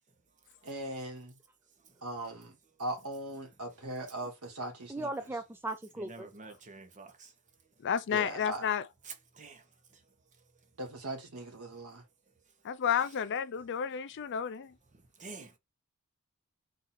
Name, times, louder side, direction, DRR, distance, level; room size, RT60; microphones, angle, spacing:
voice 1, 0.6-1.4 2.0-5.1 8.1-8.7 10.8-12.0, right 2 dB, 75° right, 1.7 m, -39 dB
voice 2, 4.9-6.3, right 2 dB, 10° right, 0.4 m, -37 dB
voice 3, 6.0-7.3 9.0-9.6 15.2-15.6, right 4 dB, 35° right, 0.9 m, -48 dB
voice 4, 7.8-8.8 12.6-14.7, left 8 dB, 55° left, 0.4 m, -31 dB
4.1 x 2.6 x 4.1 m
head